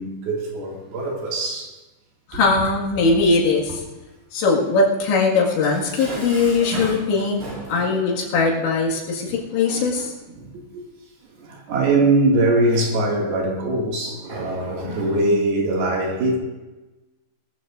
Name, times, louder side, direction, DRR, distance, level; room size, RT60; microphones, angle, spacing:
voice 1, 0.0-1.7 2.3-2.5 6.0-6.2 7.7-8.0 9.2-9.3 9.7-10.1 10.4-10.8 11.4-16.4, right 2 dB, 60° right, -2 dB, 3.8 m, -22 dB
voice 2, 2.3-3.8 4.3-7.4 7.7-10.1, left 3 dB, 75° left, -2 dB, 4.1 m, -20 dB
Dishes pots and pans, 5.5-8.0, right 2 dB, 80° right, 8.0 m, -35 dB
21.5 x 13.5 x 2.5 m, 1.1 s
omnidirectional pair, 5.4 m